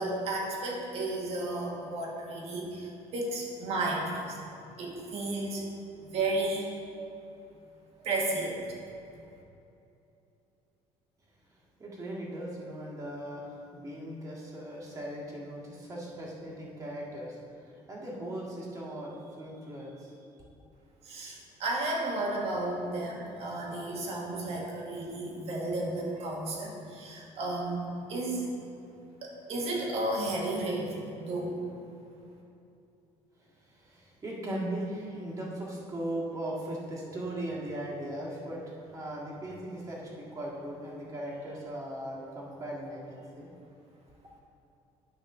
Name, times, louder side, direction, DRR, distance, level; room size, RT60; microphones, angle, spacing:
voice 1, 0.0-4.4 4.8-5.6 6.0-6.7 8.0-8.6 21.0-28.5 29.2-31.6, right 2 dB, 55° right, -1 dB, 1.6 m, -33 dB
voice 2, 11.8-20.1 33.6-43.5, right 1 dB, 25° right, -5 dB, 1.8 m, -38 dB
9.6 x 5.9 x 3.8 m, 2.7 s
cardioid pair, 135°, 13 cm